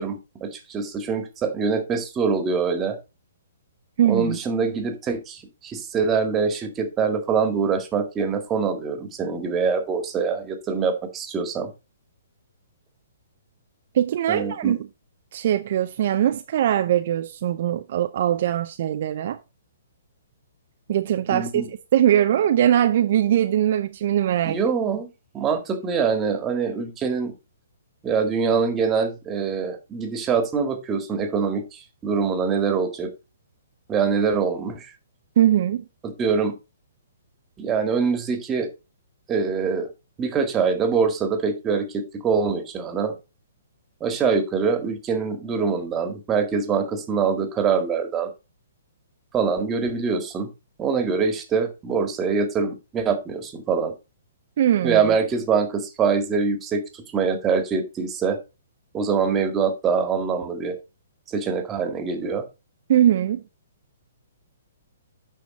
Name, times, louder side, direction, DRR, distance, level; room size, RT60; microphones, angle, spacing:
voice 1, 0.0-3.0 4.0-11.7 14.3-14.8 21.3-21.6 24.4-25.1 25.3-27.3 28.0-33.1 33.9-34.9 36.0-36.5 37.6-38.7 39.3-39.9 40.2-43.1 44.0-48.3 49.3-50.5 50.8-53.9 54.8-58.4 58.9-60.8 61.3-62.4, right 5 dB, 20° right, 1.8 m, -24 dB
voice 2, 4.0-4.4 13.9-14.8 15.3-19.4 20.9-24.6 35.4-35.8 54.6-55.0 62.9-63.4, right 11 dB, 55° right, 0.6 m, -21 dB
9.0 x 5.8 x 4.0 m
figure-of-eight pair, 125°, 0 cm